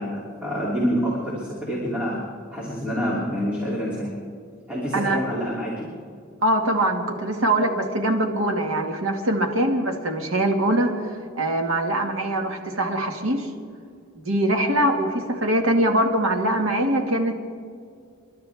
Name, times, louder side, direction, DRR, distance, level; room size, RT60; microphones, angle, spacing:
voice 1, 0.0-2.2 2.5-4.1 4.7-5.9, equal, 5° right, -7 dB, 3.0 m, -27 dB
voice 2, 6.4-10.9 11.3-13.5 14.2-17.4, right 1 dB, 80° right, 3 dB, 2.0 m, -22 dB
29.5 x 12.0 x 3.6 m, 2.2 s
head